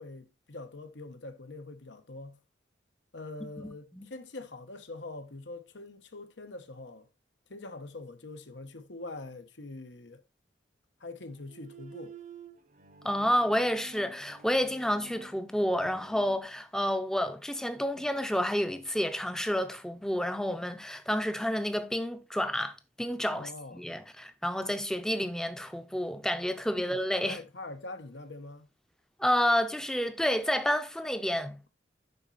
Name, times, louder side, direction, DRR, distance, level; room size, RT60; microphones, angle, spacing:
voice 1, 0.0-2.4 3.1-7.1 7.5-10.2 11.0-12.2 23.3-23.9 26.7-28.7, left 2 dB, 80° left, 1.2 m, -44 dB
Bowed string instrument, 11.3-16.4, right 4 dB, 40° right, 0.7 m, -51 dB
voice 2, 13.0-27.4 29.2-31.6, equal, 5° left, 0.6 m, -30 dB
11.0 x 4.1 x 4.1 m
head